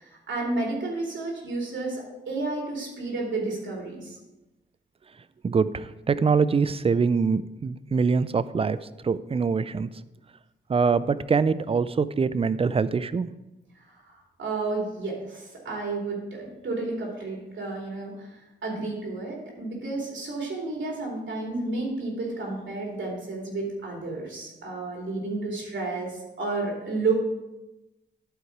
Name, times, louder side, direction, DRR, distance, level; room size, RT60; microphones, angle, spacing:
voice 1, 0.0-4.2 13.7-27.1, right 3 dB, 75° right, -2 dB, 3.0 m, -31 dB
voice 2, 5.4-8.8 9.0-9.9 10.7-13.3, right 5 dB, 30° right, 15 dB, 0.4 m, -24 dB
11.5 x 4.8 x 4.6 m, 0.99 s
cardioid pair, 80°, 19 cm